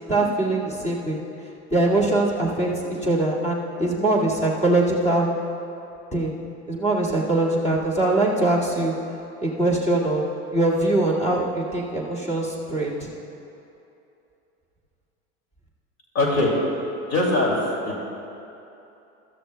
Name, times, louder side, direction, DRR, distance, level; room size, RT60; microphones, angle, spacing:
voice 1, 0.1-1.2 1.7-2.7 3.0-5.3 6.1-6.4 6.7-8.9 9.4-13.1, right 2 dB, 20° left, -4 dB, 2.0 m, -22 dB
voice 2, 16.1-16.5 17.1-17.6 17.8-18.0, left 2 dB, 50° left, -2 dB, 2.5 m, -21 dB
18.0 x 13.0 x 2.3 m, 2.9 s
supercardioid pair, 110°, 34 cm